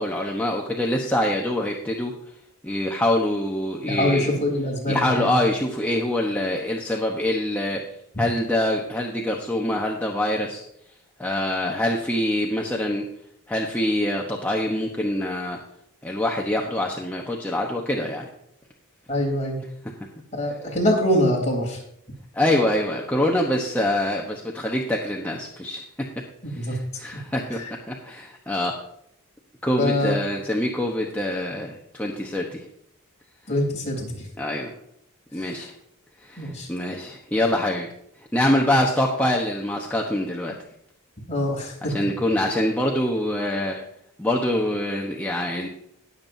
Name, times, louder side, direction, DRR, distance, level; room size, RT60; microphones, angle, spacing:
voice 1, 0.0-2.1 2.6-4.3 4.9-7.8 8.2-10.6 11.2-13.0 13.5-15.6 16.0-18.3 22.3-25.8 26.7-27.6 27.9-28.8 29.6-32.6 34.4-34.7 35.3-35.7 36.2-37.9 38.3-40.5 41.9-43.8 44.2-45.7, left 1 dB, 5° left, -1 dB, 1.0 m, -25 dB
voice 2, 3.8-5.4 19.1-19.6 20.3-21.8 26.6-26.8 27.5-27.7 29.8-30.2 33.5-34.3 35.4-35.6 36.4-36.7 41.3-41.9, left 1 dB, 30° left, -1 dB, 3.6 m, -24 dB
19.5 x 7.5 x 2.7 m, 0.73 s
head